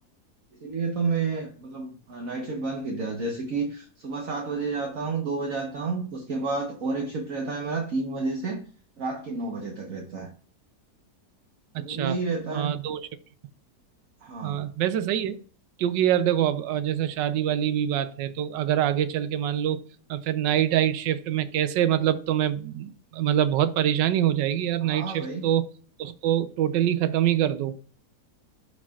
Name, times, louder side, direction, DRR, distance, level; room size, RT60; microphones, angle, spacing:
voice 1, 0.5-8.6 9.0-10.3 11.8-12.7 14.2-14.7 24.8-25.5, right 4 dB, 55° right, 1.4 m, -30 dB
voice 2, 11.7-12.2 12.5-13.0 14.4-15.4 15.8-19.8 20.1-25.7 26.0-27.8, right 11 dB, 90° right, 1.3 m, -25 dB
11.5 x 4.8 x 2.4 m
omnidirectional pair, 1.9 m